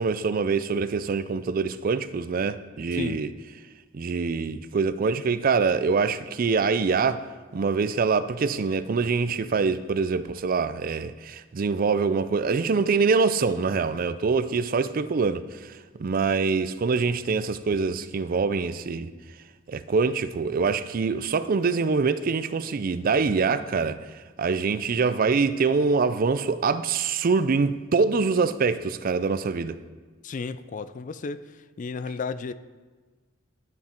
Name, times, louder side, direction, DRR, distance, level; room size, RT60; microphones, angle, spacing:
voice 1, 0.0-3.3 3.9-7.2 7.5-15.7 16.0-19.1 19.7-24.0 24.4-29.8, right 4 dB, 45° right, 0.4 m, -24 dB
voice 2, 30.2-31.5 31.8-32.5, left 4 dB, 40° left, 0.4 m, -33 dB
11.0 x 8.7 x 4.4 m
head